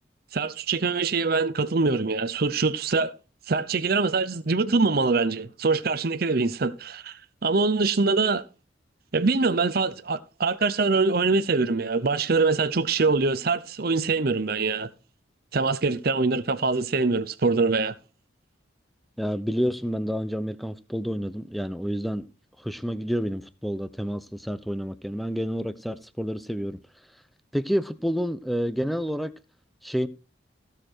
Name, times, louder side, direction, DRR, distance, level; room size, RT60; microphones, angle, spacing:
voice 1, 0.3-3.1 3.5-8.4 9.1-14.9 15.5-17.9, right 4 dB, 50° right, 0.7 m, -24 dB
voice 2, 19.2-22.2 22.6-26.8 27.5-29.3 29.8-30.1, equal, ahead, 0.7 m, -29 dB
15.5 x 6.7 x 4.5 m
head